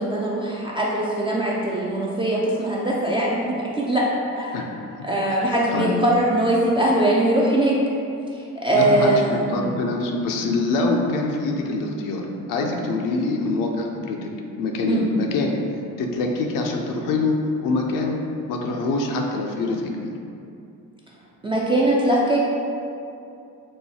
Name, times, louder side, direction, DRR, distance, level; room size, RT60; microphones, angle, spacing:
voice 1, 0.0-3.4 3.7-4.0 4.3-4.6 5.0-7.8 8.6-9.6 14.9-15.0 21.4-22.4, right 1 dB, 15° right, -5 dB, 0.3 m, -21 dB
voice 2, 5.0-6.0 8.7-14.3 14.6-15.6 16.0-17.4 17.6-18.2 18.5-20.1, left 3 dB, 50° left, 1 dB, 0.5 m, -25 dB
4.7 x 2.2 x 2.7 m, 2.6 s
figure-of-eight pair, 45°, 45 cm